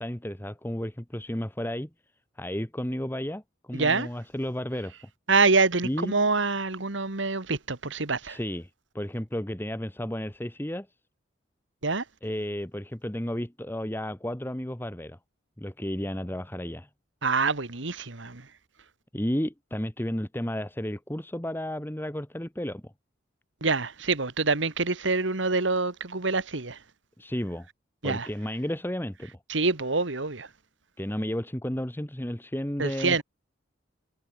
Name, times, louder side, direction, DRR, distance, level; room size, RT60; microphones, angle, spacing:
voice 1, 0.0-1.9 2.4-4.9 5.8-6.3 8.2-8.7 8.9-10.9 12.2-15.2 15.6-16.9 19.1-22.9 27.2-27.7 28.0-29.4 31.0-33.2, equal, 10° left, 1.4 m, -32 dB
voice 2, 3.7-4.1 5.3-8.4 11.8-12.0 17.2-18.5 23.6-26.8 28.0-28.3 29.5-30.5 32.8-33.2, right 3 dB, 70° right, 1.9 m, -26 dB
head